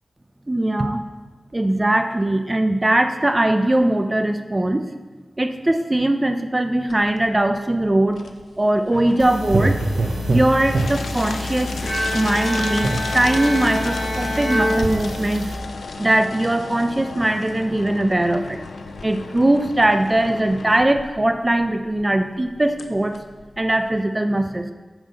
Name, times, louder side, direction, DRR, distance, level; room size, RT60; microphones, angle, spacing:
voice 1, 0.5-1.0 1.5-4.8 5.4-8.2 8.6-9.8 10.3-11.7 12.1-15.5 16.0-18.6 19.0-23.2 23.6-24.7, right 1 dB, 25° right, 7 dB, 0.9 m, -20 dB
sound 1, 6.9-23.9, left 3 dB, 90° left, 0.7 m, -35 dB
sound 2, 9.2-15.5, right 1 dB, 70° right, 1.1 m, -26 dB
Bowed string instrument, 11.8-15.6, equal, 50° left, 2.6 m, -26 dB
9.0 x 6.1 x 6.7 m, 1.3 s
cardioid pair, 55°, 0 cm